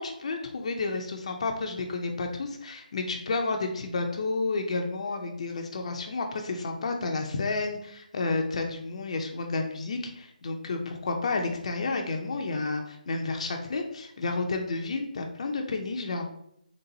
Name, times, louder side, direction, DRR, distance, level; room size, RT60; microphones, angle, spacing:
voice 1, 0.0-16.2, left 3 dB, 45° left, 3 dB, 0.5 m, -31 dB
4.0 x 3.6 x 2.7 m, 0.75 s
figure-of-eight pair, 160°, 5 cm